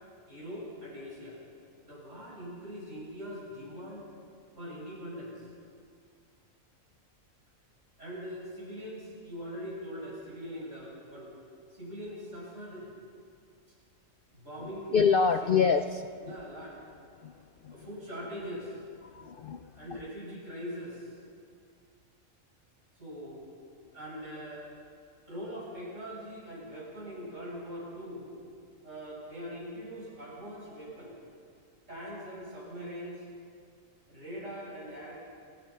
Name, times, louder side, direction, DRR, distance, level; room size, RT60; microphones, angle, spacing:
voice 1, 0.2-1.4 1.9-4.1 4.6-5.5 8.0-11.3 11.7-12.9 14.3-15.2 15.6-15.8 16.2-16.8 17.7-18.8 19.8-21.2 23.0-23.4 23.9-24.7 25.3-28.3 28.8-31.1 31.9-33.2 34.1-35.1, equal, 65° right, -5 dB, 8.1 m, -42 dB
voice 2, 14.9-16.1 17.2-17.8 19.0-20.0, left 6 dB, 55° left, 8 dB, 0.6 m, -27 dB
30.0 x 17.0 x 5.7 m, 2.3 s
omnidirectional pair, 1.4 m